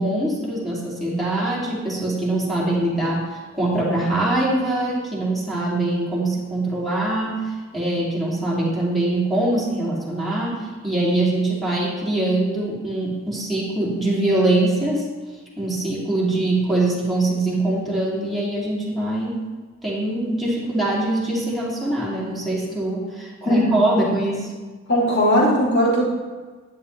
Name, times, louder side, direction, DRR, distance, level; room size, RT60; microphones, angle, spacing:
voice 1, 0.0-15.0 15.6-19.5 19.8-24.5, right 2 dB, ahead, -8 dB, 2.6 m, -23 dB
voice 2, 23.4-23.8 24.9-26.1, equal, 50° left, -4 dB, 2.7 m, -19 dB
11.5 x 9.8 x 3.2 m, 1.4 s
head